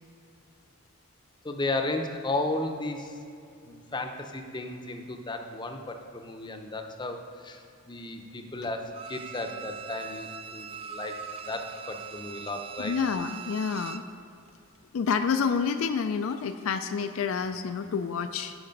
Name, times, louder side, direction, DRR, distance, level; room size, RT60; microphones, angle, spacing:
voice 1, 1.4-3.2 3.6-13.0, left 2 dB, 20° left, 4 dB, 0.6 m, -34 dB
Bowed string instrument, 8.9-14.1 14.5-14.6, right 7 dB, 25° right, 0.3 m, -41 dB
voice 2, 12.8-14.0 14.9-18.5, left 6 dB, 70° left, 8 dB, 0.4 m, -28 dB
11.0 x 5.0 x 5.2 m, 2.5 s
head